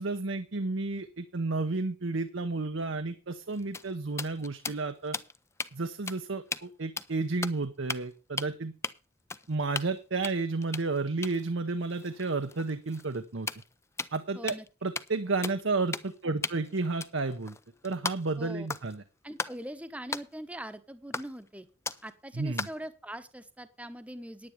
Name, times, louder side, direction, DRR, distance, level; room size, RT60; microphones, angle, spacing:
voice 1, 0.0-5.2 5.7-8.7 9.5-13.5 14.1-14.6 14.8-17.5 17.8-19.0 22.4-22.7, right 3 dB, 70° right, 9 dB, 0.9 m, -32 dB
sound 1, 3.4-5.7 6.1-6.2 6.5-6.7 7.0-7.6 7.9-8.1 8.4-8.5 8.8-8.9 9.3-10.0 10.2-14.2 14.5-14.7 15.0-15.2 15.4-15.6 15.9-16.2 16.4-18.4 18.7-19.0 19.4-19.6 20.1-20.3 21.1-21.5 21.9-22.1 22.6-22.8, left 4 dB, 15° left, 0.5 m, -37 dB
voice 2, 14.3-14.7 18.4-18.7 19.2-21.7 22.0-24.5, right 1 dB, 5° right, 11 dB, 0.9 m, -42 dB
9.9 x 9.9 x 5.1 m, 0.32 s
head